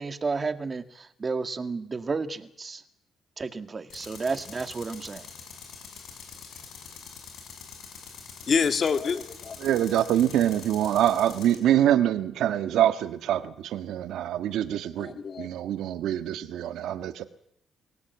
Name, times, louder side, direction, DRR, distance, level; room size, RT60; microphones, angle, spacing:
voice 1, 0.0-2.8 3.4-5.3, right 4 dB, 30° right, 9 dB, 1.8 m, -32 dB
Tools, 3.9-11.6, left 6 dB, 80° left, 6.9 m, -45 dB
voice 2, 8.5-9.7 15.0-15.5, left 6 dB, 45° left, 7 dB, 2.6 m, -27 dB
voice 3, 9.6-17.2, right 11 dB, 80° right, 10 dB, 1.5 m, -25 dB
25.5 x 17.0 x 8.2 m, 0.73 s
cardioid pair, 90°, 0 cm